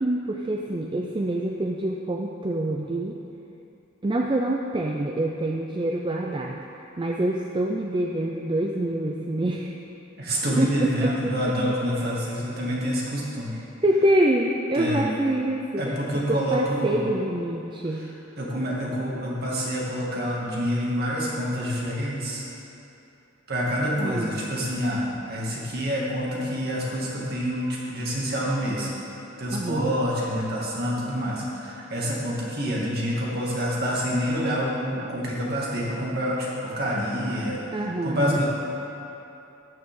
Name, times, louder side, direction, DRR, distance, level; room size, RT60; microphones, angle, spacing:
voice 1, 0.0-3.2 4.0-6.6 7.0-9.7 10.6-11.5 13.5-16.0 16.3-18.1 24.0-24.3 29.5-30.0 37.7-38.4, right 1 dB, 25° right, 0 dB, 0.5 m, -26 dB
voice 2, 10.2-13.5 14.7-15.0 15.8-17.0 18.4-22.4 23.5-28.9 29.4-37.6 38.0-38.4, equal, 50° right, -5 dB, 2.3 m, -27 dB
13.0 x 9.5 x 3.8 m, 2.8 s
head